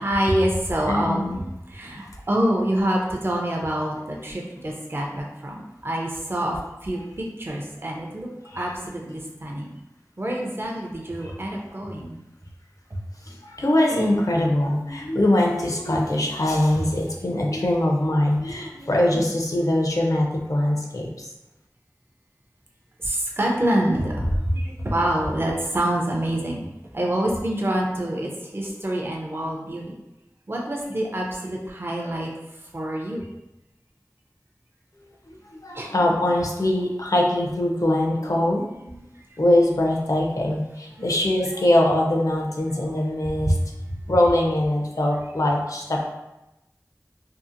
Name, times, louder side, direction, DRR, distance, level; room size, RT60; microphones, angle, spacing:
voice 1, 0.0-8.3 8.5-9.7 10.2-12.2 12.9-13.0 19.1-19.3 23.0-26.6 26.9-30.0 30.5-32.3 32.7-33.3 35.7-36.0 42.8-42.9 43.4-43.6, right 1 dB, 35° right, -1 dB, 0.5 m, -26 dB
voice 2, 0.9-1.4 8.5-8.7 11.2-11.4 13.2-21.3 35.4-39.1 39.4-43.6 44.1-46.0, left 1 dB, 60° left, -1 dB, 0.5 m, -22 dB
2.7 x 2.5 x 2.5 m, 0.94 s
wide cardioid pair, 40°, 6 cm